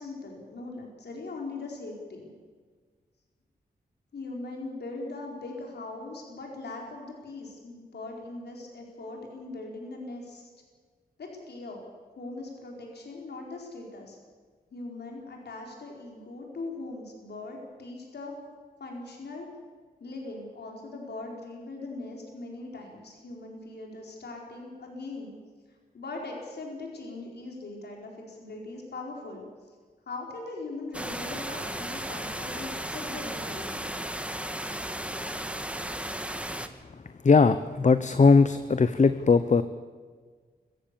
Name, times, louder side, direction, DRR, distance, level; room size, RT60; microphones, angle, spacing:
voice 1, 0.0-2.3 4.1-10.5 11.2-11.8 12.1-14.2 14.7-18.4 18.8-19.5 20.0-25.3 25.9-29.5 30.1-33.9, left 2 dB, 85° left, 0 dB, 4.6 m, -40 dB
sound 1, 30.9-36.7, right 1 dB, 5° right, 1.6 m, -35 dB
voice 2, 37.2-39.6, left 4 dB, 45° left, 12 dB, 0.8 m, -19 dB
25.0 x 15.0 x 7.0 m, 1.5 s
wide cardioid pair, 70°, 17 cm